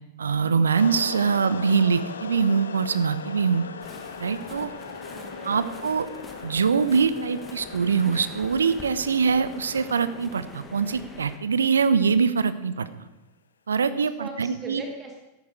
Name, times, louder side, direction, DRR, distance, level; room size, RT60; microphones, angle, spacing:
voice 1, 0.2-3.6 4.2-4.7 5.4-6.1 6.4-12.9 13.7-14.8, right 5 dB, 70° right, 14 dB, 0.7 m, -23 dB
sound 1, 0.7-12.3, left 5 dB, 70° left, 0.7 m, -40 dB
sound 2, 3.8-11.4, left 3 dB, 15° left, 1.5 m, -44 dB
voice 2, 5.1-5.8 14.0-15.2, right 3 dB, 20° right, 2 dB, 1.5 m, -39 dB
13.5 x 10.5 x 4.7 m, 1.0 s
figure-of-eight pair, 90°, 0 cm